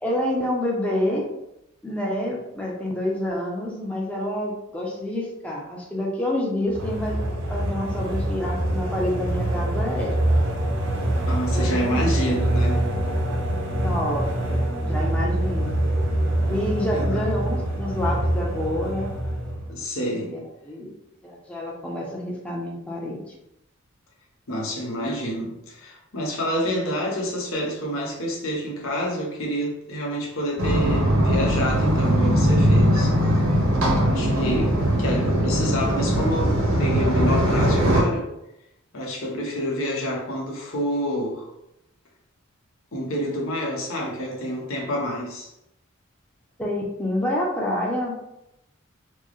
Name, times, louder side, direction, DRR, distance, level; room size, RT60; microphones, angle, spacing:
voice 1, 0.0-1.2 1.8-7.2 7.5-10.2 11.5-12.1 13.8-15.8 16.5-19.1 20.2-20.4 20.6-20.9 21.2-23.2 46.6-48.1, left 1 dB, 5° left, -3 dB, 0.5 m, -28 dB
sound 1, 6.7-19.8, right 1 dB, 60° right, 0.7 m, -25 dB
voice 2, 11.3-12.8 16.9-17.2 19.7-20.3 24.5-33.1 34.0-38.3 38.9-41.4 42.9-45.5, equal, 80° left, -1 dB, 1.0 m, -28 dB
sound 2, 30.6-38.0, equal, 80° right, 1.0 m, -20 dB
4.4 x 2.1 x 3.0 m, 0.84 s
head